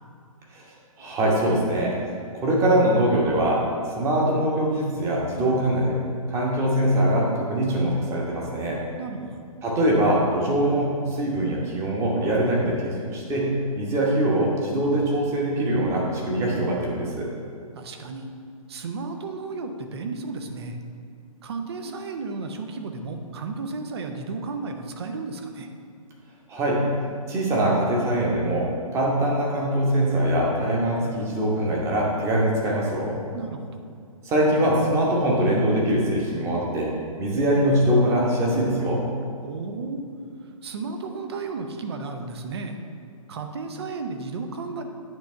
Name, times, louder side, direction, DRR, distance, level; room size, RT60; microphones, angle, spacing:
voice 1, 1.0-1.9 2.4-3.6 4.0-6.0 6.3-8.8 9.6-17.3 26.5-26.8 27.3-33.2 34.2-36.9 37.2-39.1, right 1 dB, 15° right, -3 dB, 1.1 m, -23 dB
voice 2, 9.0-9.3 17.7-18.3 18.7-20.8 21.4-25.7 33.3-33.7 39.4-40.0 40.6-42.8 43.3-44.8, right 4 dB, 45° right, 6 dB, 0.7 m, -33 dB
9.1 x 3.4 x 5.4 m, 2.3 s
figure-of-eight pair, 125°, 18 cm